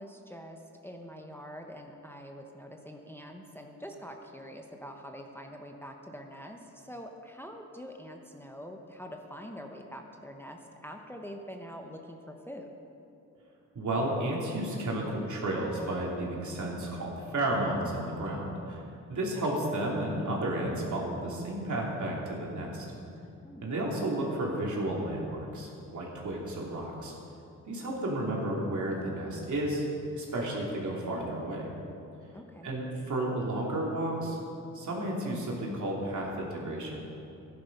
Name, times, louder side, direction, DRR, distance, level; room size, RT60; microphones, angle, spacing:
voice 1, 0.0-12.7 23.4-23.8 32.3-32.7, equal, 5° left, 2 dB, 1.0 m, -45 dB
voice 2, 13.7-18.8 19.1-22.8 23.6-27.1 27.7-29.8 30.1-31.7 32.6-34.4 34.7-37.0, right 1 dB, 65° right, -3 dB, 3.0 m, -32 dB
13.0 x 10.5 x 5.4 m, 2.8 s
cardioid pair, 75°, 32 cm